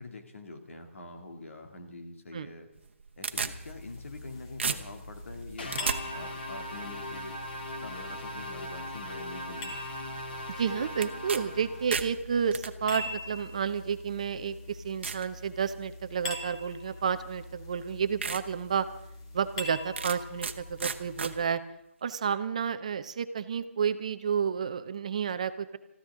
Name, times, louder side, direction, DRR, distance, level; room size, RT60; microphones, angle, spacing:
voice 1, 0.0-2.7 3.2-7.3 7.8-9.8, left 2 dB, 70° left, 5 dB, 2.4 m, -45 dB
sound 1, 2.8-4.3 4.6-6.0 11.0-11.4 11.7-12.7 13.6-13.7 14.3-14.4 15.0-15.3 15.8-16.1 17.3-17.4 17.8-17.9 18.2-18.4 18.8-18.9 20.0-20.5 20.8-21.3, right 5 dB, 55° right, 1.0 m, -33 dB
sound 2, 3.3-21.5, left 2 dB, 25° left, 1.3 m, -44 dB
sound 3, 5.6-12.1, left 1 dB, 45° left, 2.0 m, -40 dB
voice 2, 10.6-18.9 19.3-21.6 22.0-25.8, right 7 dB, 30° right, 11 dB, 0.5 m, -31 dB
24.0 x 14.0 x 3.6 m, 0.83 s
hypercardioid pair, 175°, 7 cm